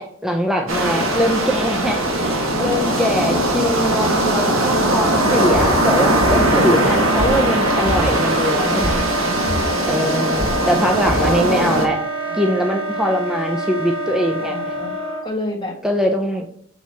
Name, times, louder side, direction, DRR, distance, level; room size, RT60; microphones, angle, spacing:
voice 1, 0.0-9.0 9.9-12.0 12.3-14.7 15.8-16.5, equal, ahead, 2 dB, 0.4 m, -22 dB
sound 1, 0.7-11.9, right 1 dB, 75° right, 1.3 m, -20 dB
voice 2, 2.5-3.0 7.2-7.8 8.5-9.8 12.3-12.5 14.4-14.9 15.2-15.7, left 1 dB, 25° left, -2 dB, 1.6 m, -32 dB
Wind instrument woodwind instrument, 5.2-15.3, right 1 dB, 25° right, 0.9 m, -26 dB
sound 2, 5.5-11.4, equal, 50° right, 2.2 m, -29 dB
7.3 x 3.0 x 4.2 m, 0.64 s
head